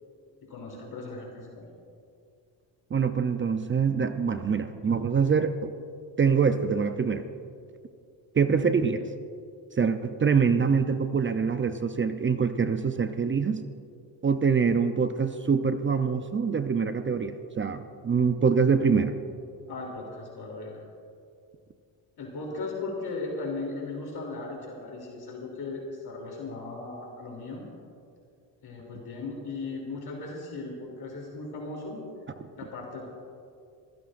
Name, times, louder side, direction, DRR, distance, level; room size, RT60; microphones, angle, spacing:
voice 1, 0.5-1.7 19.7-20.8 22.2-27.6 28.6-32.0 32.6-33.0, left 3 dB, 55° left, -2 dB, 3.3 m, -37 dB
voice 2, 2.9-5.7 6.2-7.2 8.3-9.0 9.8-13.6 14.2-19.1, right 6 dB, 25° right, 9 dB, 0.6 m, -25 dB
26.0 x 15.5 x 2.6 m, 2.4 s
cardioid pair, 100°, 45 cm